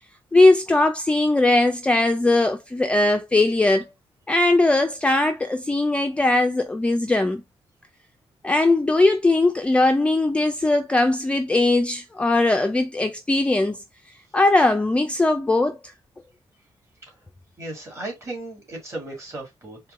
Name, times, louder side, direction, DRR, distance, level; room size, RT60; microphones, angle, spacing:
voice 1, 0.3-3.9 4.3-7.4 8.4-13.8 14.3-15.8, left 2 dB, 10° left, 0.4 m, -19 dB
voice 2, 17.6-19.8, right 2 dB, 30° right, 1.9 m, -35 dB
4.4 x 2.2 x 3.7 m
wide cardioid pair, 150°, 10 cm